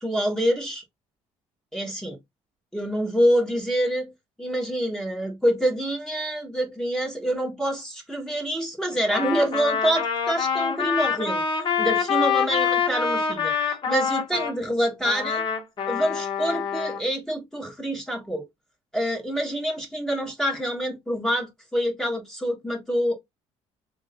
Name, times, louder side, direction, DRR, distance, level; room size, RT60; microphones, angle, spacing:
voice 1, 0.0-0.8 1.7-2.2 2.7-4.1 4.4-11.4 11.8-15.4 15.8-18.5 18.9-23.2, equal, 5° left, 1.3 m, -26 dB
Trumpet, 9.0-14.5 15.0-17.0, left 7 dB, 35° left, 1.3 m, -25 dB
3.1 x 2.7 x 4.1 m
cardioid pair, 100°, 13 cm